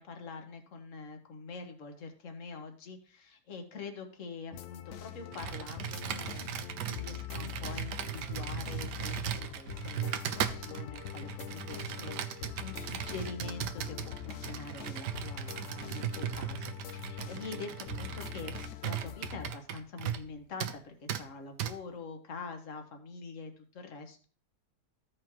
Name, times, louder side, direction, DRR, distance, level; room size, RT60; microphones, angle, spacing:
voice 1, 0.0-18.5 18.8-24.3, left 4 dB, 50° left, 5 dB, 1.5 m, -45 dB
sound 1, 4.5-19.5, left 12 dB, 70° left, 0.7 m, -43 dB
Computer keyboard, 5.3-20.3 20.6-20.8 21.1-21.2 21.6-21.7, right 10 dB, 85° right, 1.3 m, -38 dB
14.5 x 4.9 x 3.0 m, 0.40 s
omnidirectional pair, 1.8 m